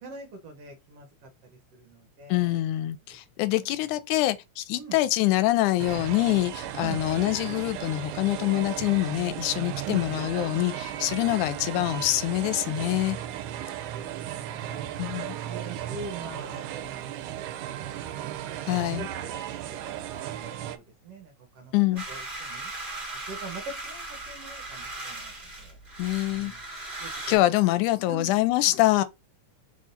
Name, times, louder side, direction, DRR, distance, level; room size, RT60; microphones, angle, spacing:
voice 1, 0.0-1.3 1.7-2.6 3.1-3.2 3.6-3.7 4.7-5.0 6.8-7.0 9.8-10.2 14.0-14.1 14.4-14.8 15.4-20.0 20.4-21.7 22.1-22.7 23.3-25.8 26.4-26.6 27.0-27.5 28.1-28.3, right 4 dB, 65° right, 1.7 m, -43 dB
voice 2, 2.3-13.2 15.0-15.3 18.7-19.1 21.7-22.0 26.0-26.5 27.3-29.0, left 16 dB, 85° left, 2.0 m, -25 dB
sound 1, 5.8-20.8, right 11 dB, 85° right, 2.0 m, -35 dB
sound 2, 22.0-27.4, right 2 dB, 20° right, 1.4 m, -38 dB
4.5 x 3.7 x 2.5 m
omnidirectional pair, 3.4 m